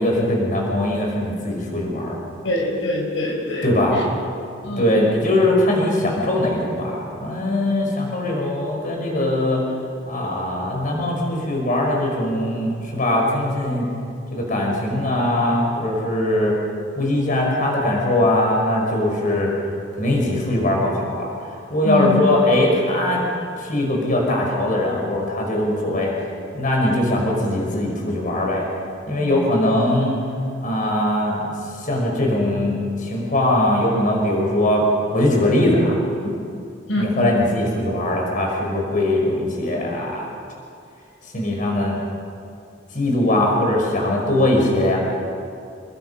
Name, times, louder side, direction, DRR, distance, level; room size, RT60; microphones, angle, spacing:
voice 1, 0.0-2.2 3.6-4.0 4.6-9.6 10.0-13.9 14.3-16.5 17.0-19.5 19.9-21.3 21.7-23.3 23.5-26.1 26.5-28.7 29.1-30.2 30.6-36.0 37.0-40.3 41.3-41.9 42.9-45.0, left 1 dB, 45° left, -1 dB, 5.4 m, -21 dB
voice 2, 2.4-4.0 4.6-4.8 19.4-19.5 21.8-22.2 29.2-29.4 36.9-37.0, left 1 dB, 85° left, -1 dB, 5.2 m, -24 dB
28.5 x 21.5 x 5.7 m, 2.4 s
head